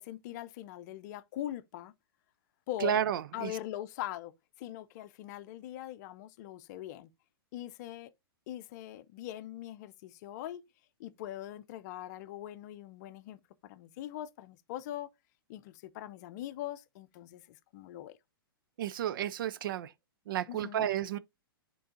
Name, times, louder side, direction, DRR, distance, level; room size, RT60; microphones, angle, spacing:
voice 1, 0.0-1.9 2.7-2.9 3.3-4.3 4.6-7.1 7.5-8.1 8.5-10.6 11.0-15.1 15.5-18.2 20.5-20.9, left 13 dB, 45° left, 0.6 m, -42 dB
voice 2, 2.8-3.5 18.8-19.9 20.3-21.2, right 10 dB, 60° right, 0.5 m, -32 dB
11.0 x 3.8 x 2.6 m
hypercardioid pair, 115°, 13 cm